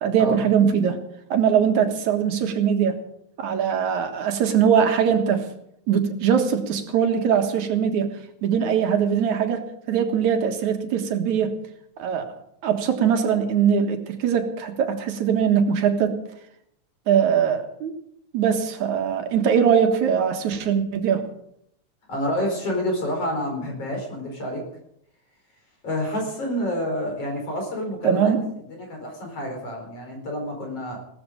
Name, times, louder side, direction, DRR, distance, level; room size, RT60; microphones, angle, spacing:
voice 1, 0.0-1.0 1.3-3.0 3.4-5.4 5.9-8.1 8.4-11.5 12.0-12.3 12.6-16.2 17.1-17.9 18.3-21.2 28.0-28.5, right 7 dB, 80° right, 5 dB, 3.0 m, -21 dB
voice 2, 22.1-24.6 25.8-31.0, equal, 55° left, 2 dB, 5.6 m, -28 dB
17.5 x 14.0 x 5.2 m, 0.73 s
omnidirectional pair, 3.3 m